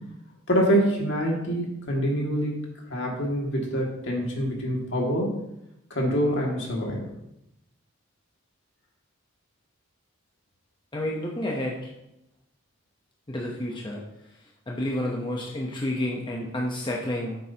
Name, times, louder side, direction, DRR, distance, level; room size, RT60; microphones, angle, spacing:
voice 1, 0.5-2.5 2.9-5.3 5.9-7.0, equal, 60° left, -1 dB, 2.2 m, -25 dB
voice 2, 10.9-11.9 13.3-14.0 14.7-17.4, left 1 dB, 20° left, -2 dB, 0.9 m, -30 dB
10.0 x 7.8 x 2.9 m, 0.86 s
head